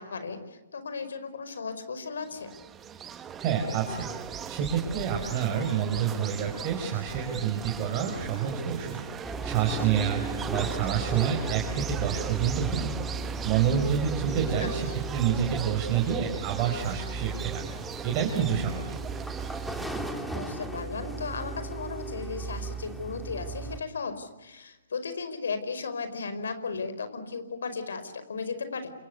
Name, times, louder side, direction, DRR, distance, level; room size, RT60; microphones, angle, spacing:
voice 1, 0.0-2.5 14.6-15.0 20.3-28.9, left 4 dB, 80° left, 10 dB, 5.0 m, -35 dB
sound 1, 2.2-19.9, right 8 dB, 15° right, 1.4 m, -39 dB
voice 2, 3.4-4.1 4.5-10.2 10.5-12.9 13.2-17.7 18.0-18.9, right 8 dB, 30° right, 1 dB, 5.1 m, -28 dB
sound 2, 9.2-23.8, right 3 dB, ahead, 2.7 m, -36 dB
28.0 x 24.5 x 8.2 m, 1.1 s
hypercardioid pair, 145°, 0 cm